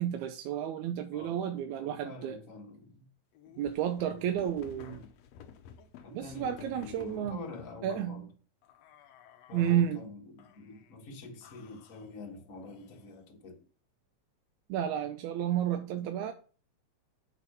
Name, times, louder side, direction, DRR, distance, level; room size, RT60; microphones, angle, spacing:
voice 1, 0.0-2.4 3.6-5.0 6.1-7.4 7.8-8.3 9.5-10.0 14.7-16.3, right 10 dB, 90° right, 2.0 m, -31 dB
voice 2, 1.1-3.1 4.0-4.3 4.8-5.1 6.0-8.3 9.5-13.6, left 3 dB, 45° left, 1.0 m, -47 dB
sound 1, 3.3-7.8 8.6-9.9 10.4-11.0 11.4-13.2, left 8 dB, 75° left, 1.7 m, -53 dB
8.2 x 3.6 x 5.4 m
omnidirectional pair, 3.3 m